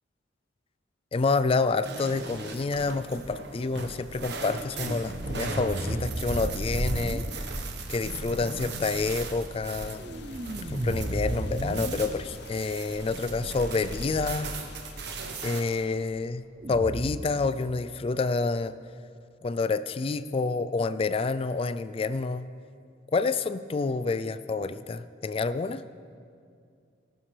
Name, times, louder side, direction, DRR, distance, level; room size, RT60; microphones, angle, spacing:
voice 1, 1.1-7.6 7.9-10.0 10.7-14.5 15.4-18.7 19.4-22.5 23.1-25.8, left 4 dB, 30° left, 14 dB, 0.3 m, -28 dB
sound 1, 1.8-15.6, right 3 dB, 60° right, 1.1 m, -38 dB
sound 2, 2.3-2.6 4.7-7.2 9.8-12.4 16.6-17.2, right 1 dB, 35° right, 0.6 m, -33 dB
sound 3, 9.6-15.9, left 5 dB, 60° left, 0.7 m, -50 dB
19.0 x 11.5 x 3.3 m, 2.3 s
head